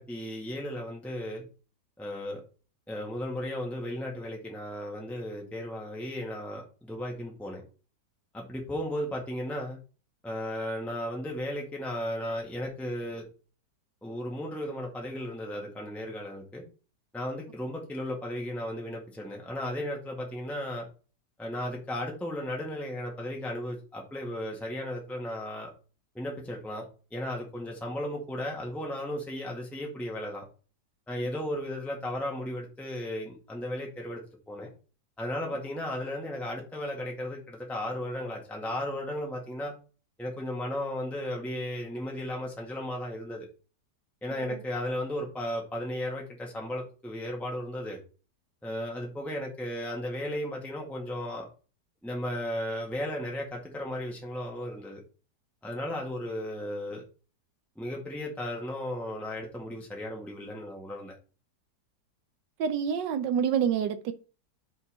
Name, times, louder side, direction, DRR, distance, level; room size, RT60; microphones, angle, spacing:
voice 1, 0.0-1.4 2.0-2.4 2.9-7.6 8.3-9.8 10.2-13.2 14.0-16.6 17.1-20.8 21.4-25.7 26.1-26.8 27.1-30.4 31.1-34.7 35.2-39.7 40.2-43.5 44.2-48.0 48.6-51.4 52.0-55.0 55.6-57.0 57.8-61.2, left 1 dB, ahead, 1.6 m, -35 dB
voice 2, 62.6-64.1, right 8 dB, 85° right, 1.4 m, -27 dB
5.6 x 5.4 x 5.4 m
omnidirectional pair, 1.8 m